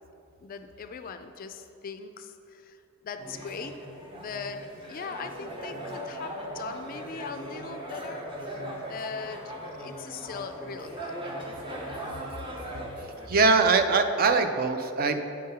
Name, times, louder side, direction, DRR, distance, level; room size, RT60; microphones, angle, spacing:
voice 1, 0.4-2.8 3.0-3.7 4.1-8.6 8.9-11.1, left 5 dB, 40° left, 8 dB, 0.3 m, -40 dB
sound 1, 3.2-13.3, right 1 dB, 25° right, 0.8 m, -39 dB
voice 2, 13.3-15.2, right 4 dB, 40° right, 8 dB, 0.4 m, -22 dB
8.7 x 3.7 x 5.4 m, 2.8 s
head